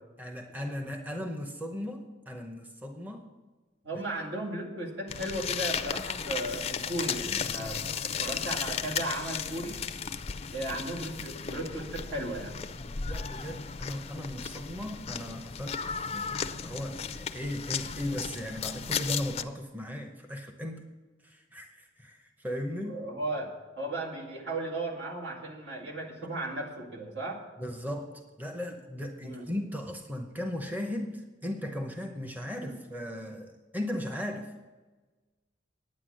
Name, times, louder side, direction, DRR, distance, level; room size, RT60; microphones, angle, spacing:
voice 1, 0.2-3.3 3.9-4.0 7.5-8.0 12.8-20.8 21.2-23.0 26.2-26.3 27.6-34.5, left 1 dB, 10° right, 4 dB, 0.9 m, -37 dB
voice 2, 3.8-9.8 10.5-12.5 22.8-27.4 29.2-29.5 32.6-32.8, right 1 dB, 70° right, -2 dB, 2.3 m, -36 dB
sound 1, 5.1-19.4, left 6 dB, 35° left, 0.5 m, -35 dB
9.7 x 9.3 x 6.3 m, 1.3 s
head